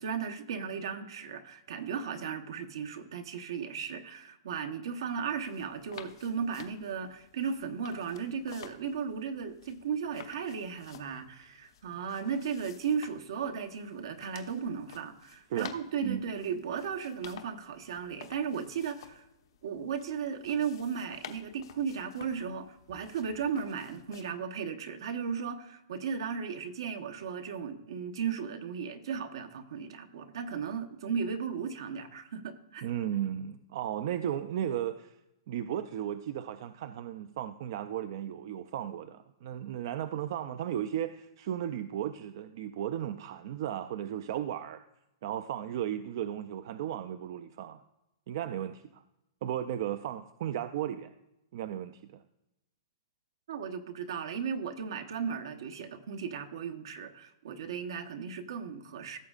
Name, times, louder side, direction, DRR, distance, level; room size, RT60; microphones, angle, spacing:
voice 1, 0.0-19.3 19.6-32.9 53.5-59.2, right 6 dB, 75° right, 6 dB, 1.0 m, -36 dB
sound 1, 5.1-24.2, left 9 dB, 70° left, 0.9 m, -53 dB
voice 2, 32.8-35.2 35.5-44.8 45.2-47.8 48.3-49.0 49.4-51.1 51.5-52.2, right 10 dB, 50° right, 11 dB, 0.4 m, -35 dB
16.0 x 7.2 x 2.4 m, 0.90 s
hypercardioid pair, 165°, 3 cm